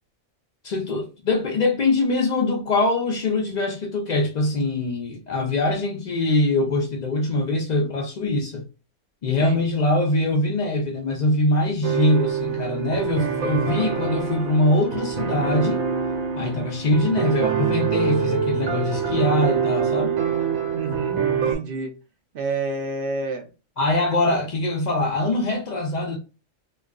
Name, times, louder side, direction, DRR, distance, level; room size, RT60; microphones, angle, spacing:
voice 1, 0.6-8.6 9.2-15.9 16.4-20.1 23.8-26.2, left 2 dB, 70° left, 0.4 m, -23 dB
sound 1, 11.8-21.5, right 6 dB, 85° right, 1.0 m, -25 dB
voice 2, 20.7-21.9 22.3-23.5, right 3 dB, 65° right, 0.5 m, -29 dB
2.4 x 2.3 x 2.3 m
omnidirectional pair, 1.4 m